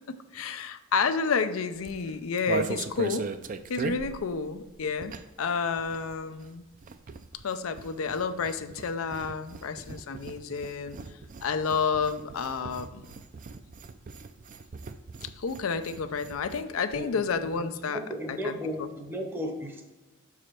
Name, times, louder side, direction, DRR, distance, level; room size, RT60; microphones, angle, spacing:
voice 1, 0.1-3.3 3.7-6.6 7.4-11.0 11.4-13.1 15.2-18.0 18.3-18.9, left 5 dB, 90° left, 10 dB, 0.5 m, -30 dB
sound 1, 1.7-5.5 5.7-16.6 16.9-17.0 17.2-17.5, right 4 dB, 40° right, 0.4 m, -39 dB
voice 2, 17.9-19.8, equal, 10° right, 2 dB, 0.7 m, -34 dB
6.0 x 4.8 x 4.3 m, 1.1 s
head